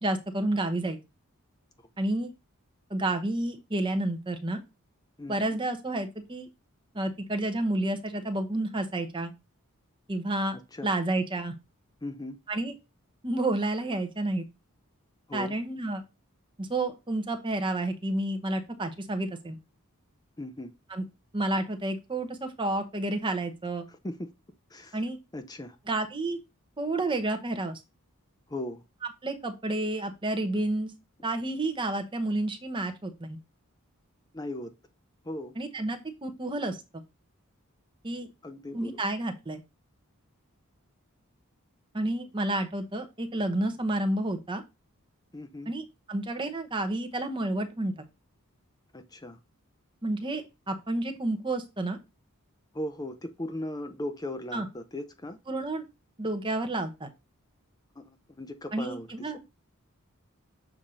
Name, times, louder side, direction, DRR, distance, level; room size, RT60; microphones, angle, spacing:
voice 1, 0.0-1.0 2.0-2.3 2.9-4.6 5.3-6.5 6.9-9.3 10.1-10.6 10.8-11.5 12.5-12.7 13.2-14.5 15.3-16.0 16.6-19.6 20.9-21.0 21.3-23.9 24.9-25.2 25.9-26.4 26.8-27.8 29.2-30.9 31.2-33.4 35.6-37.0 38.0-38.3 38.7-39.6 41.9-44.6 45.7-45.8 46.1-47.9 50.0-52.0 54.5-54.7 55.5-55.8 56.2-57.1 58.7-59.4, right 2 dB, 20° right, 0.9 m, -30 dB
voice 2, 5.2-5.6 10.7-10.9 12.0-12.4 15.3-15.5 20.4-20.7 23.9-24.3 24.7-25.0 25.3-25.8 28.5-28.8 34.3-34.7 35.3-35.5 38.4-39.0 45.3-45.7 48.9-49.4 52.7-55.4 58.0-59.4, left 1 dB, 20° left, 0.6 m, -38 dB
7.2 x 2.8 x 4.9 m
head